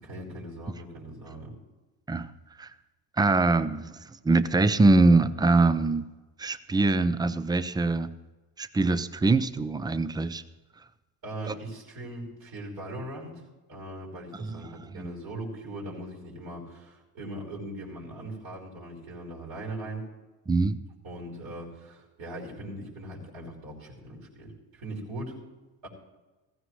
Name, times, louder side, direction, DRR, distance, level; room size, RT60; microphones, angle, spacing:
voice 1, 0.0-1.5 11.2-13.3 13.7-20.1 21.0-25.4 25.8-25.9, right 1 dB, 60° right, -2 dB, 5.3 m, -40 dB
voice 2, 3.2-6.1 6.4-8.1 8.6-10.4 11.5-11.6 14.4-15.1 20.5-20.8, right 3 dB, 10° right, 14 dB, 0.6 m, -23 dB
15.5 x 15.5 x 3.3 m, 1.2 s
supercardioid pair, 85°, 40 cm